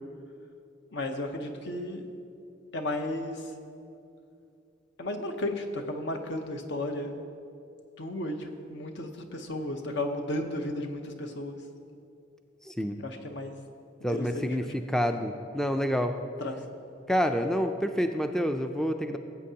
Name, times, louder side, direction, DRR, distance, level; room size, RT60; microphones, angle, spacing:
voice 1, 0.9-2.0 2.7-3.5 5.0-7.1 8.0-11.6 13.0-13.5 14.1-14.7 16.4-16.6, left 1 dB, 65° left, 5 dB, 0.9 m, -34 dB
voice 2, 12.6-13.0 14.0-16.2 17.1-19.2, equal, 5° left, 6 dB, 0.3 m, -28 dB
18.0 x 8.3 x 2.8 m, 2.6 s
head